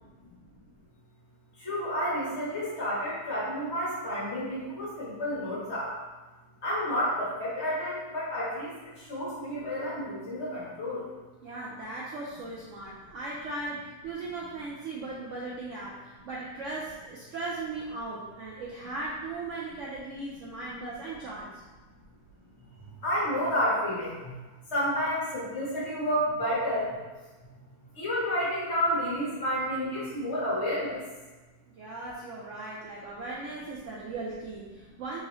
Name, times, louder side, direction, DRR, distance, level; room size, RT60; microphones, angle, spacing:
voice 1, 1.6-5.9 6.6-11.0 23.0-24.3 24.7-26.9 27.9-31.0, equal, 45° left, -8 dB, 1.3 m, -30 dB
voice 2, 11.4-21.6 31.8-35.2, right 2 dB, 70° right, -5 dB, 0.7 m, -38 dB
3.8 x 2.8 x 3.0 m, 1.2 s
omnidirectional pair, 1.7 m